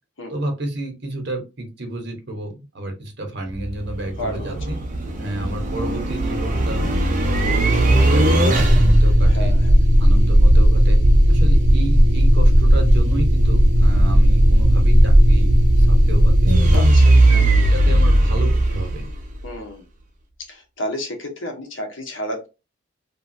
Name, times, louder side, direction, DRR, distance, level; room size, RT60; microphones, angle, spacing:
voice 1, 0.3-4.8 5.2-6.9 7.2-9.6 10.0-11.0 11.3-16.9 17.3-19.1, right 1 dB, 55° right, 3 dB, 0.9 m, -31 dB
sound 1, 3.5-19.5, right 1 dB, 40° right, 0.5 m, -15 dB
voice 2, 4.2-4.6 5.0-5.3 9.3-9.7 16.7-17.3 19.4-19.8 20.5-22.5, equal, 65° left, 3 dB, 1.0 m, -31 dB
2.9 x 2.3 x 2.5 m, 0.27 s
head